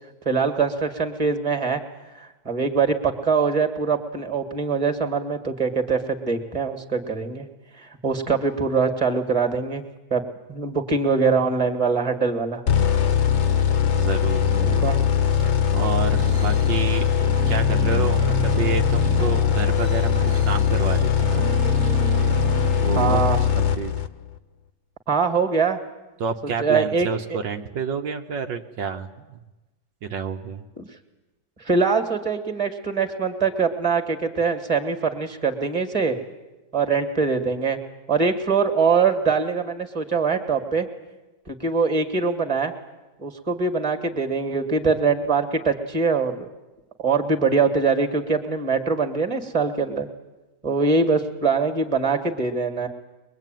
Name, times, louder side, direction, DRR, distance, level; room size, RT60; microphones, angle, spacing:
voice 1, 0.3-1.8 2.1-7.5 7.8-9.8 10.1-10.2 10.5-12.6 14.6-15.0 23.0-23.4 25.1-25.8 26.6-27.4 30.8-30.9 31.6-36.2 36.7-37.8 38.1-40.9 41.5-42.7 43.2-46.5 47.0-50.1 50.6-52.9, right 5 dB, 15° right, 6 dB, 2.0 m, -23 dB
sound 1, 12.7-24.3, left 8 dB, 45° left, 1.0 m, -21 dB
voice 2, 13.9-14.9 15.4-17.1 17.5-21.5 22.8-23.2 23.6-23.9 26.2-29.4 30.0-30.6, right 6 dB, 75° right, 5 dB, 1.8 m, -29 dB
sound 2, 16.2-23.8, right 10 dB, 55° right, 1.3 m, -32 dB
22.5 x 22.5 x 9.2 m, 1.1 s
omnidirectional pair, 2.0 m